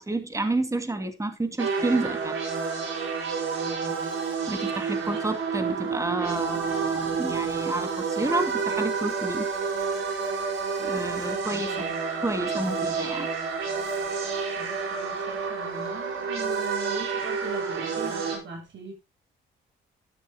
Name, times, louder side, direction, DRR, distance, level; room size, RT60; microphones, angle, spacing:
voice 1, 0.0-2.3 4.5-9.5 10.8-11.7 12.2-13.3, right 2 dB, 15° right, 2.7 m, -30 dB
sound 1, 1.6-18.4, right 5 dB, 85° right, 4.7 m, -29 dB
voice 2, 3.6-4.1 5.0-5.2 11.2-12.0 12.6-13.0 14.6-18.9, right 3 dB, 70° right, 7.1 m, -41 dB
13.0 x 12.0 x 2.2 m
cardioid pair, 90°, 20 cm